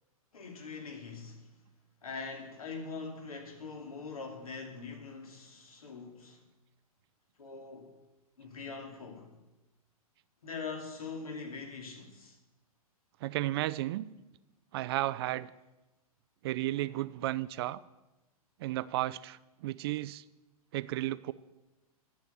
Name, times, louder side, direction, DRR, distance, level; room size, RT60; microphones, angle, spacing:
voice 1, 0.3-1.5 2.0-6.4 7.4-7.9 8.4-9.3 10.4-12.4, left 4 dB, 70° left, 2.7 m, -43 dB
voice 2, 13.2-14.1 14.7-15.5 16.4-17.8 18.6-20.2 20.7-21.3, right 16 dB, 40° right, 0.5 m, -33 dB
11.0 x 7.1 x 7.9 m
figure-of-eight pair, 115°, 19 cm